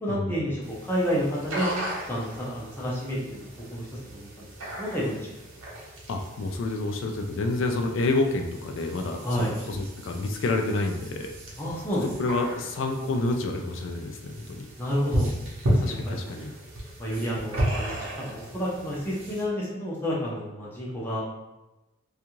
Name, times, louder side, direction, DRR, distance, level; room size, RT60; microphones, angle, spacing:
voice 1, 0.0-1.7 2.1-4.5 4.8-5.3 9.2-9.6 11.6-12.1 14.8-15.3 15.7-16.4 17.0-21.2, equal, 10° left, -6 dB, 0.5 m, -30 dB
sound 1, 0.6-19.4, equal, 90° right, 0.7 m, -35 dB
voice 2, 6.1-11.3 12.2-14.7 15.8-16.6, left 2 dB, 65° left, 3 dB, 0.3 m, -29 dB
2.5 x 2.3 x 2.9 m, 1.0 s
head